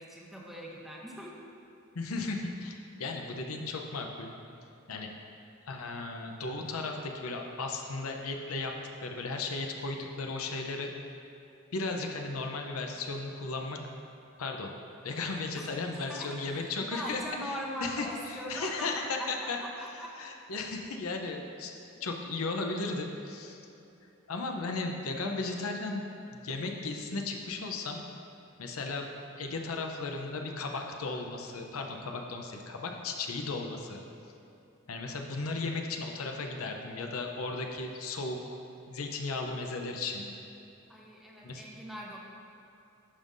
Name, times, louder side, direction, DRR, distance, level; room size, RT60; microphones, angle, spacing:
voice 1, 0.0-1.4 15.5-15.7 16.1-18.9 19.2-19.3 19.6-20.1 40.9-42.2, equal, ahead, -4 dB, 0.8 m, -41 dB
voice 2, 1.9-4.3 4.9-5.1 5.7-8.8 9.0-10.9 11.7-13.8 14.4-14.7 15.0-19.6 20.2-21.7 22.0-23.6 24.3-26.0 26.3-28.1 28.6-29.1 29.4-34.0 34.9-38.6 38.9-40.3 41.4-41.6, left 3 dB, 85° left, 3 dB, 0.6 m, -35 dB
11.5 x 5.4 x 2.6 m, 2.8 s
head